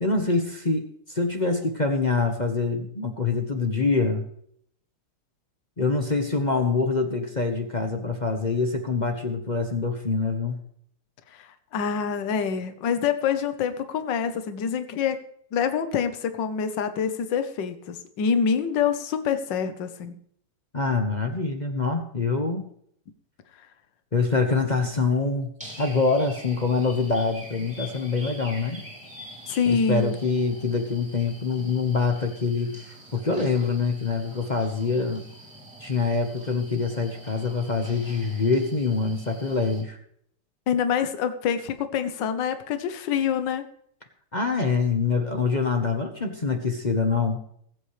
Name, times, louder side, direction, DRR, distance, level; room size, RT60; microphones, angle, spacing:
voice 1, 0.0-4.3 5.8-10.6 20.7-22.7 24.1-25.5 25.8-28.8 29.7-35.2 35.8-40.0 44.3-47.4, left 4 dB, 30° left, 4 dB, 0.9 m, -25 dB
voice 2, 11.7-15.2 15.5-20.1 29.5-30.1 40.7-43.6, left 7 dB, 60° left, 9 dB, 1.6 m, -26 dB
sound 1, 25.6-39.8, equal, 5° right, 2.6 m, -45 dB
20.5 x 8.3 x 3.3 m, 0.67 s
omnidirectional pair, 2.4 m